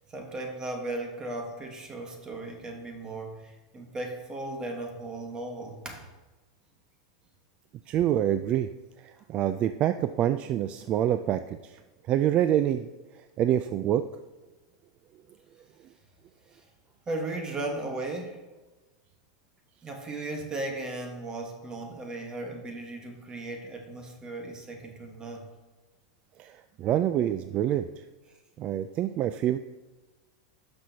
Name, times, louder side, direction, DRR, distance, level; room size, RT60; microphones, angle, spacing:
voice 1, 0.1-6.1 16.5-16.6 17.1-18.4 19.8-25.5, right 2 dB, 20° right, 2 dB, 1.3 m, -36 dB
voice 2, 7.9-8.7 9.0-11.8 12.1-12.9 13.1-14.1 26.4-28.0 28.6-29.6, right 11 dB, 40° right, 10 dB, 0.3 m, -26 dB
11.5 x 6.1 x 2.8 m, 1.2 s
hypercardioid pair, 120°, 3 cm